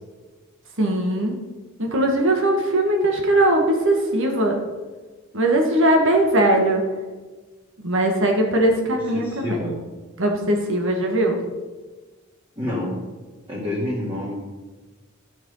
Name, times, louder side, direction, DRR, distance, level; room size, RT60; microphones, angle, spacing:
voice 1, 0.8-1.3 1.8-4.6 5.3-6.8 7.8-9.6 10.2-11.4, right 1 dB, 65° right, 2 dB, 1.7 m, -20 dB
voice 2, 9.1-9.7 12.6-13.0 13.5-14.3, left 1 dB, 25° right, -8 dB, 2.6 m, -27 dB
13.0 x 6.4 x 5.5 m, 1.3 s
head